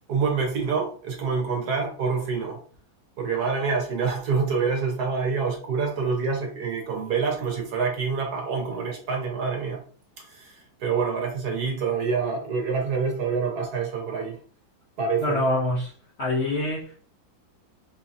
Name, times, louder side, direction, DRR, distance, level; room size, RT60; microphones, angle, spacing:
voice 1, 0.1-2.6 3.2-9.8 10.2-14.4 15.0-15.4, right 5 dB, 60° right, 1.2 m, -26 dB
voice 2, 15.2-15.9 16.2-16.9, left 1 dB, 55° left, 0.8 m, -25 dB
4.0 x 2.8 x 2.5 m
omnidirectional pair, 2.1 m